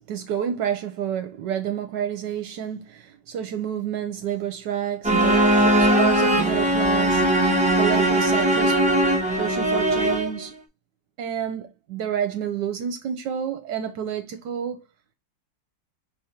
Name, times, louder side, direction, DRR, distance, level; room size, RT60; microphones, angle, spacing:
voice 1, 0.1-8.8 9.4-10.5 11.2-14.8, right 9 dB, 80° right, 1.2 m, -29 dB
sound 1, 5.0-10.5, right 1 dB, 10° right, 0.5 m, -20 dB
4.9 x 3.1 x 2.8 m
omnidirectional pair, 1.9 m